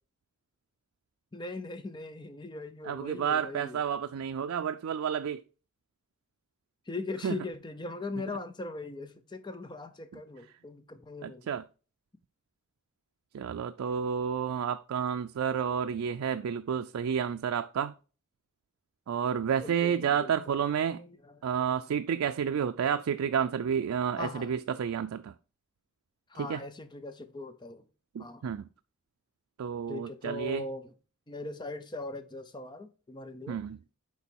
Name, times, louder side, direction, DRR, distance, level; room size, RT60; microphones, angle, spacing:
voice 1, 1.3-3.8 6.9-11.5 19.6-20.3 20.9-21.3 24.2-24.5 26.3-27.9 28.2-28.4 29.9-30.9 31.3-33.6, left 2 dB, 20° left, 0.7 m, -40 dB
voice 2, 2.8-5.4 7.2-7.4 11.2-11.6 13.3-17.9 19.1-21.0 21.4-25.3 26.3-26.6 28.1-28.7 29.6-30.6 33.5-33.8, right 7 dB, 90° right, 0.4 m, -30 dB
7.0 x 4.4 x 4.4 m
head